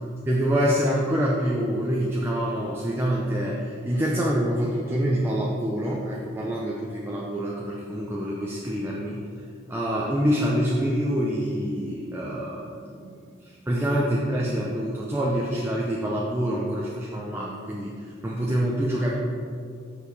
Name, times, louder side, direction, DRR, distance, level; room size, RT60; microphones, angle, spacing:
voice 1, 0.3-9.3 9.7-19.1, equal, 10° right, -4 dB, 0.7 m, -26 dB
8.2 x 6.4 x 4.9 m, 2.3 s
head